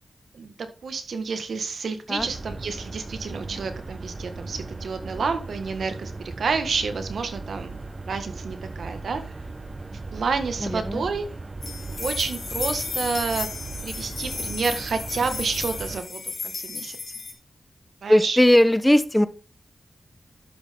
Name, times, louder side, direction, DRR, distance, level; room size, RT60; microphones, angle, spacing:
voice 1, 0.8-6.1 6.4-7.8 8.0-9.2 10.1-11.2 12.0-13.5 13.8-17.0 18.0-18.4, right 4 dB, 85° right, 8 dB, 1.6 m, -29 dB
sound 1, 2.2-16.0, right 3 dB, 35° right, 0.8 m, -37 dB
voice 2, 10.6-11.0 18.1-19.3, left 1 dB, 10° left, 14 dB, 0.8 m, -18 dB
sound 2, 11.6-17.3, left 4 dB, 75° left, 3.0 m, -33 dB
12.0 x 6.4 x 3.6 m, 0.35 s
wide cardioid pair, 95°, 0 cm